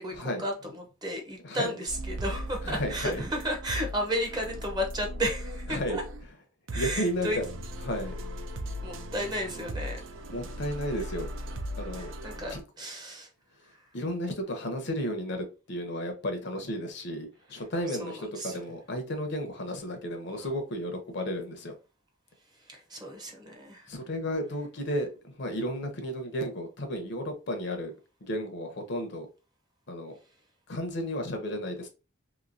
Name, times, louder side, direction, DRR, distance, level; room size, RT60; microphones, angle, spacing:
voice 1, 0.0-6.0 6.7-7.4 8.8-10.0 11.0-11.1 11.9-13.3 13.6-13.9 17.5-17.6 17.9-18.6 20.3-20.5 22.6-23.9, equal, 20° right, 0.6 m, -34 dB
sound 1, 1.9-6.3 6.7-12.6, equal, 65° right, 0.5 m, -38 dB
voice 2, 2.6-3.2 5.7-6.0 6.7-7.4 7.8-8.2 10.3-11.3 11.8-12.1 12.5-12.6 13.9-21.8 23.9-27.9 28.2-29.3 29.9-30.2 30.7-31.9, equal, 55° left, 0.7 m, -33 dB
3.0 x 2.7 x 2.6 m
head